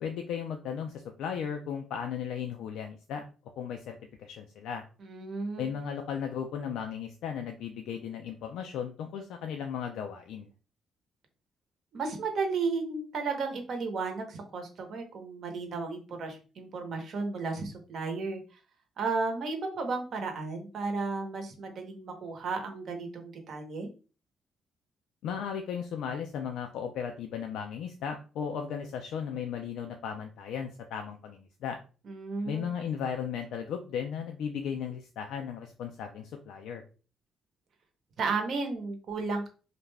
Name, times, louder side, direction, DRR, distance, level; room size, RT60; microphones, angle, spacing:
voice 1, 0.0-3.3 3.6-4.8 5.6-10.5 25.2-31.8 32.4-36.8, left 7 dB, 85° left, 4 dB, 0.3 m, -36 dB
voice 2, 5.0-5.7 11.9-18.4 19.0-23.9 32.1-32.7 38.2-39.5, right 4 dB, 60° right, 5 dB, 0.8 m, -33 dB
2.4 x 2.2 x 3.2 m, 0.36 s
cardioid pair, 90°, 0 cm